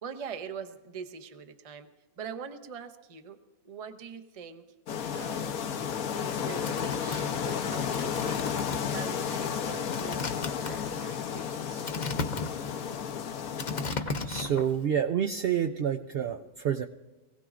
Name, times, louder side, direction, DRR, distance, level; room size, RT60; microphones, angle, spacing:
voice 1, 0.0-1.9 2.2-3.4 3.6-4.6 5.1-5.5 6.1-8.5 8.9-12.0, right 6 dB, 30° right, 8 dB, 0.7 m, -43 dB
sound 1, 4.9-13.9, left 7 dB, 75° left, 1.2 m, -32 dB
sound 2, 6.3-14.8, left 3 dB, 40° left, 0.7 m, -36 dB
voice 2, 13.9-16.9, right 8 dB, 70° right, 5 dB, 0.5 m, -29 dB
24.0 x 16.5 x 2.5 m, 1.2 s
omnidirectional pair, 1.6 m